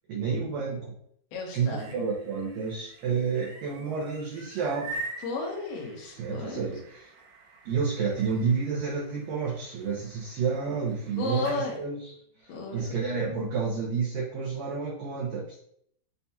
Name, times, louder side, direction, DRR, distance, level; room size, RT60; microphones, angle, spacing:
voice 1, 0.1-0.9 1.5-5.0 6.1-7.1 7.7-15.6, right 5 dB, 90° right, -4 dB, 1.8 m, -30 dB
voice 2, 1.3-1.9 5.2-6.7 11.2-11.8 12.5-12.9, left 3 dB, 70° left, -1 dB, 2.0 m, -33 dB
sound 1, 1.5-11.7, right 2 dB, 70° right, 2.5 m, -45 dB
6.8 x 2.3 x 2.8 m, 0.67 s
omnidirectional pair, 4.9 m